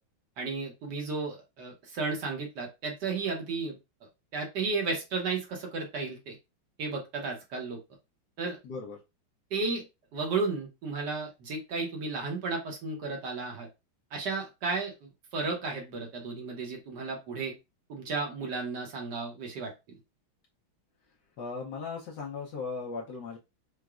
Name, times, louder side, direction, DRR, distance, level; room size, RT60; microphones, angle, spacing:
voice 1, 0.4-3.8 4.3-6.4 6.8-7.8 8.4-8.6 9.5-9.8 10.1-13.7 14.1-17.5 17.9-19.7, right 4 dB, 65° right, 1 dB, 1.3 m, -33 dB
voice 2, 8.6-9.0 21.4-23.4, left 4 dB, 70° left, -1 dB, 1.1 m, -37 dB
4.8 x 2.1 x 2.3 m, 0.25 s
omnidirectional pair, 2.2 m